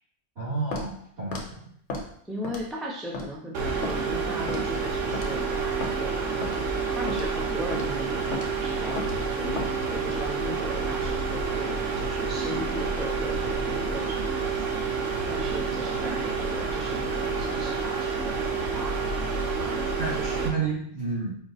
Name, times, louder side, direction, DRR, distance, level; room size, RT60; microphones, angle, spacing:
voice 1, 0.4-1.7 20.0-21.4, right 4 dB, 60° right, -8 dB, 2.3 m, -31 dB
Walk footsteps, 0.7-0.9 1.3-1.5 1.9-2.1 2.4-2.7 3.1-3.3 3.8-4.0 4.5-4.7 5.1-5.3 5.8-5.9 6.4-6.6 7.1-7.3 7.7-7.9 8.3-8.5 9.0-9.2 9.6-9.7, left 2 dB, 70° left, 1.1 m, -33 dB
voice 2, 2.2-6.5 6.9-9.6 9.9-19.3 19.6-20.5, equal, ahead, -3 dB, 0.5 m, -37 dB
sound 1, 3.5-20.5, right 4 dB, 85° right, 1.1 m, -29 dB
5.2 x 2.4 x 3.9 m, 0.62 s
omnidirectional pair, 1.3 m